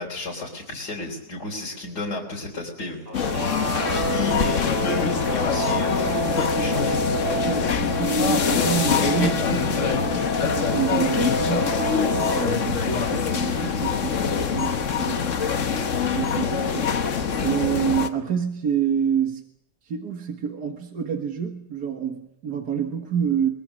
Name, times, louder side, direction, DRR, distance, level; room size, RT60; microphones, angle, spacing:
voice 1, 0.0-3.0 3.7-7.0, left 2 dB, 80° left, -3 dB, 4.1 m, -33 dB
sound 1, 3.1-18.1, left 6 dB, 50° left, 1.4 m, -24 dB
Guitar, 3.1-12.5, right 1 dB, 20° right, 4.8 m, -29 dB
voice 2, 7.3-11.8 12.3-15.4 16.1-16.9 17.4-19.4 19.9-23.5, right 7 dB, 75° right, 3 dB, 2.2 m, -27 dB
23.5 x 21.5 x 6.6 m, 0.78 s
omnidirectional pair, 1.7 m